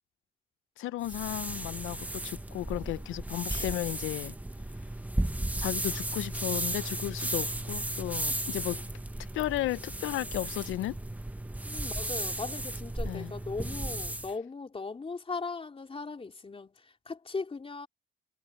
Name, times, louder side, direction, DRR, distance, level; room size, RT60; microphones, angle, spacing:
voice 1, 0.8-4.3 5.6-8.8 9.3-11.0 13.0-13.3, left 15 dB, 80° left, 0.7 m, -34 dB
sound 1, 1.0-14.3, right 1 dB, 5° right, 1.1 m, -35 dB
sound 2, 2.1-2.2 3.5-4.2 4.6-4.7 6.3-7.2, left 6 dB, 55° left, 2.7 m, -50 dB
voice 2, 11.6-17.9, left 4 dB, 30° left, 3.6 m, -38 dB
cardioid pair, 90°, 20 cm